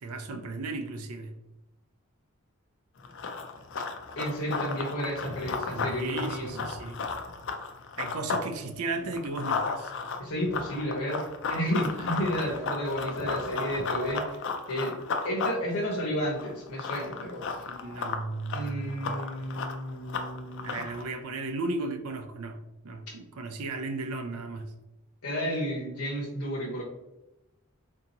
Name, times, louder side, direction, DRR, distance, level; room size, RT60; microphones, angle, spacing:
voice 1, 0.0-1.3 5.7-7.0 8.0-9.9 12.0-12.2 17.7-19.2 20.6-24.7, right 3 dB, 85° right, 7 dB, 0.5 m, -35 dB
Run, 3.0-8.5 8.8-21.0, left 4 dB, 55° left, 0.4 m, -34 dB
voice 2, 4.2-6.6 10.2-14.4 14.7-14.9 15.2-17.7 18.5-20.8 25.2-26.8, equal, 90° left, -5 dB, 0.9 m, -32 dB
sound 1, 8.1-8.8 12.1-14.3, right 2 dB, 55° right, 0.8 m, -41 dB
3.7 x 2.8 x 2.8 m, 0.96 s
head